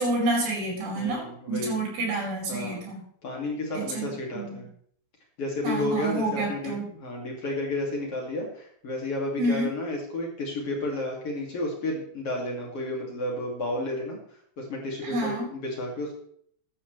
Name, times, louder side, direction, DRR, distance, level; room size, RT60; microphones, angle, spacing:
voice 1, 0.0-3.0 3.7-4.6 5.6-6.8 9.4-9.7 15.0-15.5, right 2 dB, 75° right, -3 dB, 6.9 m, -29 dB
voice 2, 0.9-1.8 2.5-2.8 3.2-4.7 5.4-14.2 14.6-16.2, left 1 dB, 40° left, -1 dB, 3.0 m, -32 dB
14.5 x 11.5 x 3.3 m, 0.64 s
omnidirectional pair, 5.0 m